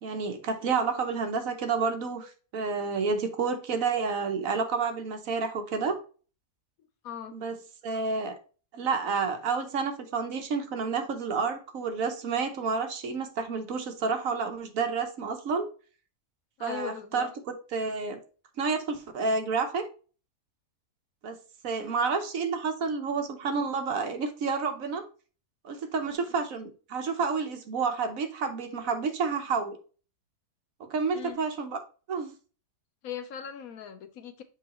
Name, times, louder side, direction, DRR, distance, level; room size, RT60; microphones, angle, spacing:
voice 1, 0.0-6.0 7.3-7.5 7.8-8.4 8.7-15.7 16.6-17.3 17.7-18.2 18.6-19.9 21.2-21.4 21.6-25.0 25.6-29.8 30.9-31.8 32.1-32.4, right 5 dB, 60° right, 1.2 m, -30 dB
voice 2, 7.0-7.4 16.6-17.3 31.1-31.4 33.0-34.4, left 8 dB, 70° left, 1.1 m, -39 dB
7.4 x 4.7 x 2.9 m
omnidirectional pair, 1.7 m